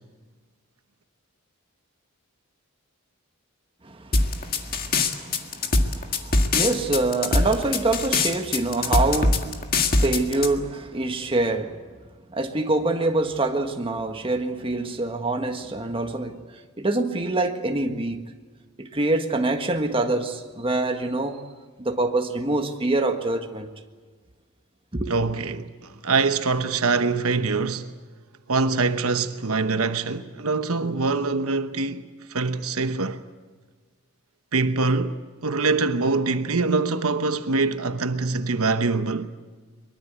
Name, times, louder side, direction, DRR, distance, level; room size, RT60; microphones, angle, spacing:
voice 1, 3.8-11.8 12.3-16.4 16.8-18.2 18.8-21.4 21.8-23.7 24.9-25.2, right 2 dB, 25° right, 1.6 m, -26 dB
sound 1, 4.1-10.5, left 3 dB, 45° left, 1.9 m, -22 dB
voice 2, 25.1-27.9 28.5-33.2 34.5-39.3, right 3 dB, 80° right, 1.1 m, -24 dB
23.5 x 22.5 x 8.2 m
head